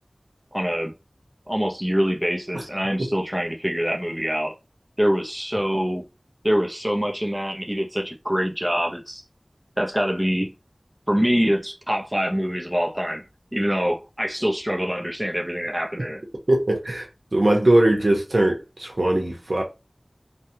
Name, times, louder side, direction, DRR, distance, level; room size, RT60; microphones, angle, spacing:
voice 1, 0.5-0.9 1.5-4.5 5.0-6.0 6.4-9.2 9.8-10.5 11.1-13.2 13.5-16.2, equal, 10° right, 0.6 m, -24 dB
voice 2, 16.5-17.1 17.3-19.6, right 1 dB, 70° right, 0.9 m, -20 dB
3.2 x 2.2 x 2.7 m
wide cardioid pair, 45°, 0 cm